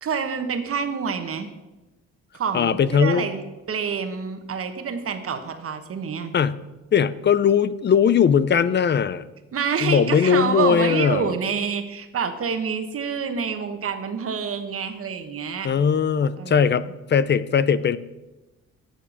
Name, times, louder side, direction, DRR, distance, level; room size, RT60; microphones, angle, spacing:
voice 1, 0.0-1.5 2.3-6.3 9.5-15.7 16.4-16.7, right 6 dB, 50° right, 7 dB, 1.2 m, -27 dB
voice 2, 2.5-3.2 6.3-6.6 6.9-9.3 9.8-11.3 15.6-18.0, left 7 dB, 35° left, 17 dB, 0.5 m, -19 dB
7.3 x 7.2 x 7.0 m, 1.1 s
cardioid pair, 90°, 30 cm